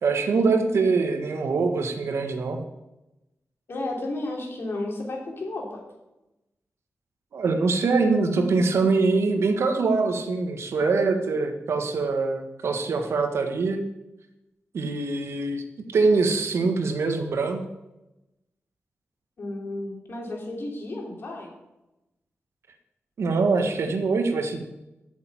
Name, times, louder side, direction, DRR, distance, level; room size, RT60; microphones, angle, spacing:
voice 1, 0.0-2.6 7.3-13.8 14.7-15.6 15.9-17.6 23.2-24.6, right 4 dB, 80° right, 5 dB, 1.6 m, -23 dB
voice 2, 3.7-5.8 19.4-21.5, left 2 dB, 60° left, 0 dB, 3.3 m, -33 dB
8.8 x 7.0 x 8.4 m, 0.96 s
wide cardioid pair, 90°, 4 cm